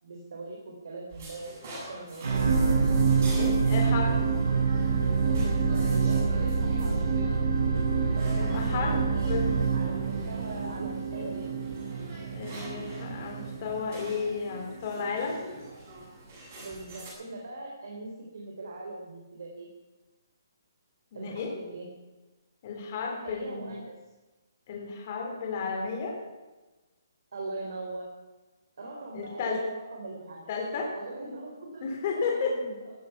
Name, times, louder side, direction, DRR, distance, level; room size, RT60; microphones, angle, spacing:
voice 1, 0.0-1.6 1.9-2.3 5.4-7.0 8.1-9.3 9.7-11.5 16.6-19.7 21.1-21.9 23.2-24.0 27.3-28.1 28.8-30.4 31.0-31.8 32.1-32.9, right 2 dB, 60° right, -1 dB, 3.6 m, -40 dB
sound 1, 1.1-17.1, right 1 dB, 40° right, 7.3 m, -45 dB
sound 2, 2.2-14.6 15.2-15.3, right 5 dB, 85° right, 6.2 m, -26 dB
voice 2, 3.3-4.2 8.3-9.5 12.3-15.4 21.1-21.5 22.6-23.7 24.7-26.2 29.1-29.6 30.5-30.9 31.8-32.6, left 5 dB, 30° left, 0 dB, 3.4 m, -33 dB
15.0 x 14.5 x 5.8 m, 1.2 s
hypercardioid pair, 170°, 2 cm